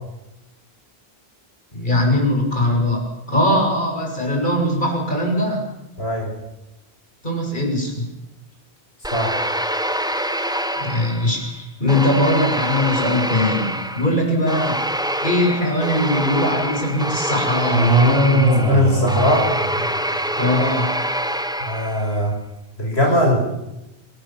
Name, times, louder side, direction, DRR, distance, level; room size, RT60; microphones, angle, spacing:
voice 1, 1.7-5.6 7.2-8.1 10.8-14.8 15.2-17.8 20.1-21.0, left 1 dB, 50° left, 1 dB, 7.4 m, -21 dB
voice 2, 6.0-6.3 9.1-9.4 18.6-19.5 21.6-22.4 22.8-23.4, equal, 85° left, 0 dB, 5.9 m, -20 dB
sound 1, 9.0-11.5 11.9-22.2, equal, 5° right, 1.2 m, -25 dB
sound 2, 17.7-20.2, right 1 dB, 90° right, 6.7 m, -18 dB
27.0 x 19.5 x 7.4 m, 0.94 s
omnidirectional pair, 1.0 m